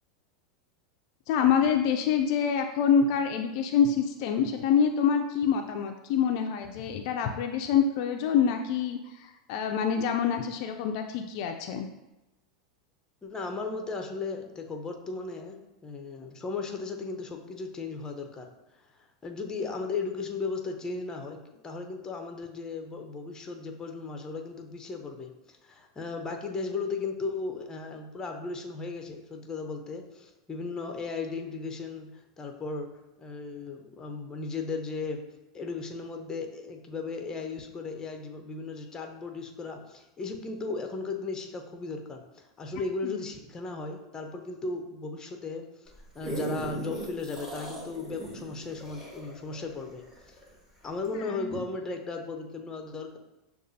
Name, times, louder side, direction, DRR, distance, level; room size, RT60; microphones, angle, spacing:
voice 1, 1.3-11.9 43.0-43.2 51.2-51.5, left 7 dB, 55° left, 5 dB, 0.3 m, -26 dB
voice 2, 13.2-18.5 19.2-32.9 33.2-35.2 35.5-50.4 50.8-53.2, left 4 dB, 20° left, 4 dB, 0.6 m, -36 dB
sound 1, 45.9-50.5 51.0-51.1, right 1 dB, 10° right, 1.2 m, -38 dB
6.3 x 2.3 x 2.7 m, 0.97 s
hypercardioid pair, 115°, 4 cm